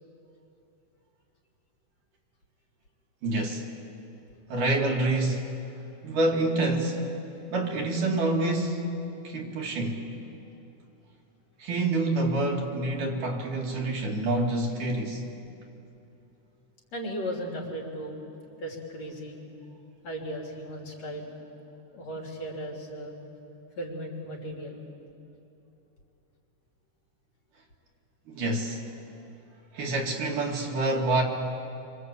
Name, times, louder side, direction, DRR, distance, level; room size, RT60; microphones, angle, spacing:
voice 1, 3.2-3.7 4.5-5.5 6.0-7.1 7.5-9.0 9.2-10.0 11.6-15.2 28.3-28.9 29.7-31.2, right 2 dB, 80° right, 0 dB, 4.0 m, -27 dB
voice 2, 16.9-18.2 18.6-19.4 20.0-21.3 21.9-23.1 23.8-24.8, equal, 55° left, -1 dB, 4.6 m, -36 dB
26.5 x 25.5 x 8.5 m, 2.8 s
omnidirectional pair, 3.6 m